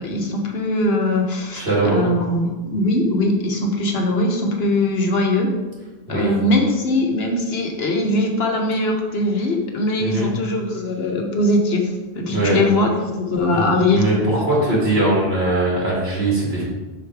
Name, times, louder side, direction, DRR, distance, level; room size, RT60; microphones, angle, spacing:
voice 1, 0.0-5.5 6.1-14.0, left 1 dB, 75° left, 1 dB, 1.3 m, -21 dB
voice 2, 1.5-2.0 6.1-6.3 10.0-10.3 12.3-12.6 13.5-16.6, right 2 dB, 75° right, -5 dB, 2.6 m, -20 dB
5.7 x 5.2 x 4.6 m, 1.2 s
omnidirectional pair, 1.1 m